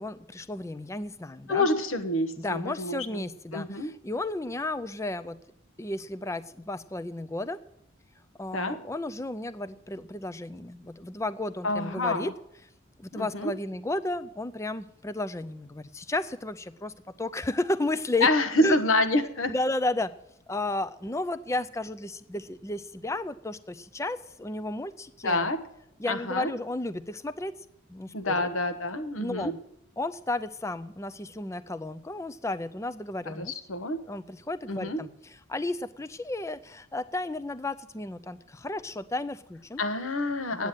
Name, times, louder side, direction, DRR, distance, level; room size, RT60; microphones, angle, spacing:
voice 1, 0.0-1.7 2.4-5.4 5.8-7.6 8.4-12.3 13.0-18.3 18.6-18.8 19.5-20.1 20.5-25.5 26.0-27.5 27.9-28.5 29.2-29.6 30.0-33.6 34.1-39.8 40.5-40.7, left 2 dB, 15° left, 13 dB, 0.4 m, -33 dB
voice 2, 1.5-3.2 3.5-3.9 8.5-8.8 11.6-12.3 13.1-13.5 18.2-19.5 25.2-25.6 26.1-26.5 28.1-29.5 33.3-34.0 34.7-35.0 39.8-40.7, left 2 dB, 80° left, 8 dB, 1.2 m, -27 dB
9.1 x 8.7 x 9.0 m, 0.80 s
head